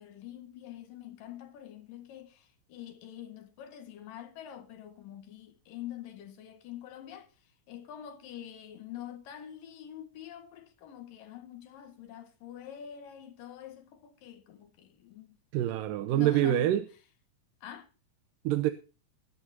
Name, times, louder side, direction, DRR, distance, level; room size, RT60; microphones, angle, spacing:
voice 1, 0.0-7.3 7.7-15.4 16.0-16.8 17.6-17.9, left 11 dB, 75° left, 3.4 m, -45 dB
voice 2, 15.5-16.8 18.4-18.7, right 13 dB, 80° right, 2.4 m, -26 dB
21.0 x 11.5 x 2.8 m
omnidirectional pair, 4.0 m